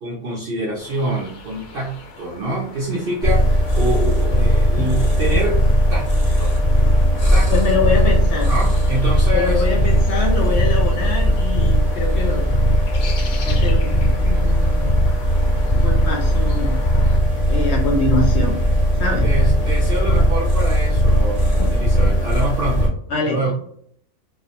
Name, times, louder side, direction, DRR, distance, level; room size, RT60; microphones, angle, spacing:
voice 1, 0.0-5.6 5.9-6.1 6.4-6.5 7.3-7.5 8.5-9.6 19.2-23.0 23.3-23.5, right 1 dB, 65° right, -3 dB, 0.6 m, -26 dB
sound 1, 0.8-17.2, left 3 dB, 85° left, 1.1 m, -40 dB
sound 2, 3.2-22.9, equal, 35° left, 0.7 m, -17 dB
voice 2, 7.5-8.5 9.3-12.5 13.4-14.8 15.7-16.8 17.5-18.6 19.0-19.3 19.6-19.7 21.6-21.7 23.1-23.5, left 3 dB, 65° left, 1 dB, 0.7 m, -24 dB
2.4 x 2.0 x 2.7 m, 0.63 s
omnidirectional pair, 1.5 m